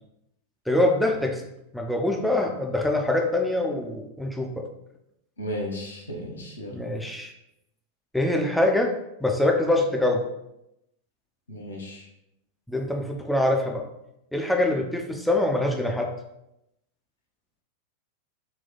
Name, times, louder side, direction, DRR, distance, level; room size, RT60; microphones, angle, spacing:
voice 1, 0.7-1.4 1.7-4.7 6.7-7.3 8.1-8.9 9.2-10.2 12.7-13.8 14.3-16.1, left 1 dB, ahead, 1 dB, 0.5 m, -24 dB
voice 2, 5.4-6.8 11.5-12.1, equal, 70° left, 0 dB, 0.9 m, -34 dB
4.3 x 2.2 x 3.9 m, 0.85 s
figure-of-eight pair, 90°, 0 cm